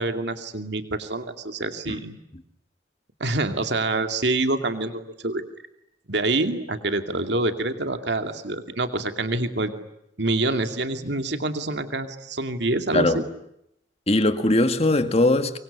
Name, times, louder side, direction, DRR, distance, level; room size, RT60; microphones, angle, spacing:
voice 1, 0.0-2.2 3.2-5.4 6.1-9.7 10.2-13.2, right 2 dB, 65° right, 2.6 m, -26 dB
voice 2, 14.1-15.6, left 1 dB, 35° left, 1.9 m, -20 dB
25.5 x 23.5 x 9.9 m
head